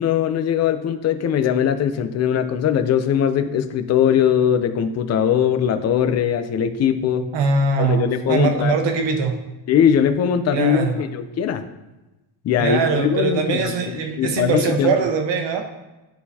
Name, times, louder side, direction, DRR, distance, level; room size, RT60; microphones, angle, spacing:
voice 1, 0.0-7.3 7.8-8.7 9.7-11.6 12.4-13.7 14.2-14.9, left 8 dB, 35° left, 9 dB, 0.4 m, -20 dB
voice 2, 7.3-9.4 10.5-11.0 12.6-15.6, right 4 dB, 60° right, 5 dB, 1.0 m, -21 dB
11.0 x 3.9 x 2.8 m, 1.1 s
cardioid pair, 145°, 50 cm